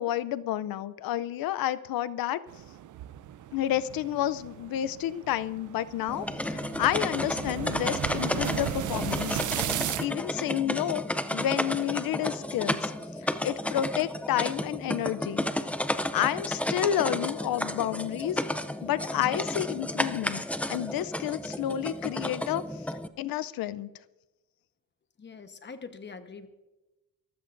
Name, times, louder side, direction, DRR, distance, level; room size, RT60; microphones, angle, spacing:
voice 1, 0.0-2.4 3.5-9.4 10.0-11.0 11.3-12.9 13.4-15.4 16.1-18.4 18.8-20.4 20.7-22.6 23.2-23.9, left 12 dB, 70° left, 15 dB, 0.6 m, -30 dB
sound 1, 2.5-10.1, right 12 dB, 55° right, 0.6 m, -36 dB
sound 2, 6.1-23.1, left 1 dB, 5° left, 0.5 m, -32 dB
voice 2, 25.2-26.5, left 5 dB, 30° left, 8 dB, 1.1 m, -43 dB
24.0 x 14.5 x 2.6 m, 1.1 s
cardioid pair, 135°, 36 cm